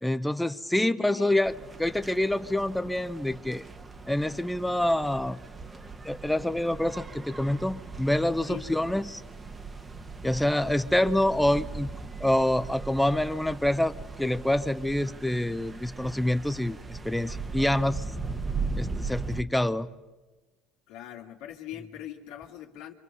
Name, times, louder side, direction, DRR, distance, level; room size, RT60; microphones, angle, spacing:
voice 1, 0.0-1.5 1.8-3.7 4.1-5.4 6.0-9.2 10.2-11.9 12.2-18.0 18.7-19.9, left 1 dB, 5° left, 12 dB, 0.9 m, -26 dB
voice 2, 0.8-1.3 8.5-8.6 20.9-22.9, left 12 dB, 80° left, -1 dB, 2.2 m, -41 dB
sound 1, 1.4-19.4, right 4 dB, 20° right, 1.3 m, -39 dB
29.0 x 25.5 x 5.5 m, 1.2 s
supercardioid pair, 95°, 0 cm